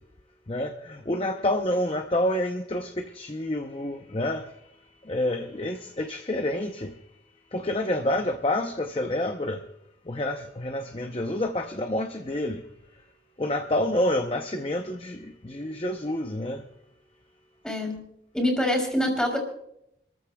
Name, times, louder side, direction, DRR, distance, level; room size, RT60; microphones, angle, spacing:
voice 1, 0.5-4.4 5.1-6.9 7.5-9.6 10.1-12.6 13.4-16.6, left 1 dB, 30° left, 0.7 m, -28 dB
voice 2, 17.6-18.0 18.3-19.4, left 1 dB, 5° left, 3.4 m, -25 dB
28.5 x 14.0 x 2.3 m
head